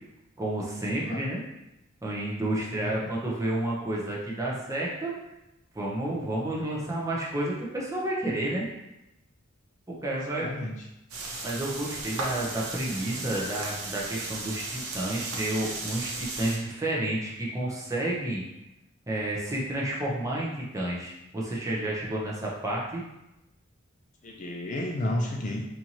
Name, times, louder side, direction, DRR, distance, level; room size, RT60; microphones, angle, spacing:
voice 1, 0.4-1.4 2.0-5.1 5.7-8.7 9.9-10.5 11.4-18.4 19.1-23.0, right 1 dB, 15° right, -4 dB, 0.7 m, -30 dB
voice 2, 2.8-3.1 10.4-10.9 24.2-25.6, left 1 dB, 35° left, 0 dB, 0.4 m, -32 dB
sound 1, 11.1-16.6, right 3 dB, 80° right, 0.8 m, -35 dB
4.4 x 2.6 x 2.8 m, 0.94 s
head